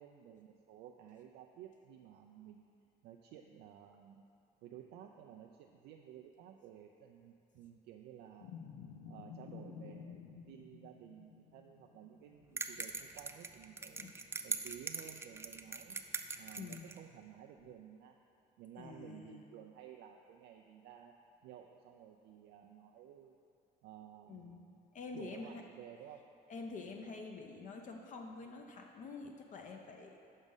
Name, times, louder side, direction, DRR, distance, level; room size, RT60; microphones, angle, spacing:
voice 1, 0.0-2.7 3.0-4.3 4.6-8.6 9.1-14.1 14.4-16.0 16.4-18.2 18.6-21.1 21.4-23.4 23.8-24.8 25.1-26.2, right 10 dB, 85° right, 2 dB, 0.4 m, -54 dB
sound 1, 8.4-13.1 13.5-13.6 17.6-17.7, left 6 dB, 90° left, 0.6 m, -52 dB
sound 2, 12.6-17.0, right 4 dB, 15° right, 0.3 m, -41 dB
voice 2, 16.6-16.9 18.8-19.4 24.3-24.6 24.9-25.6 26.5-30.2, left 4 dB, 50° left, 2 dB, 0.6 m, -47 dB
6.2 x 5.2 x 5.4 m, 2.5 s
cardioid pair, 110°, 17 cm